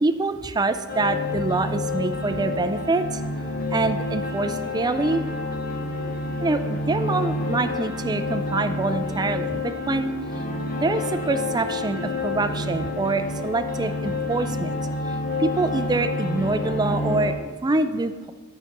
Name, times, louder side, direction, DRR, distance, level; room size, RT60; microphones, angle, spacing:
voice 1, 0.0-3.2 3.7-5.2 6.4-10.1 10.8-14.7 15.4-18.3, right 3 dB, 20° right, 9 dB, 0.4 m, -25 dB
sound 1, 0.9-17.3, left 2 dB, 40° left, 1.0 m, -28 dB
12.5 x 5.7 x 3.0 m, 1.5 s
head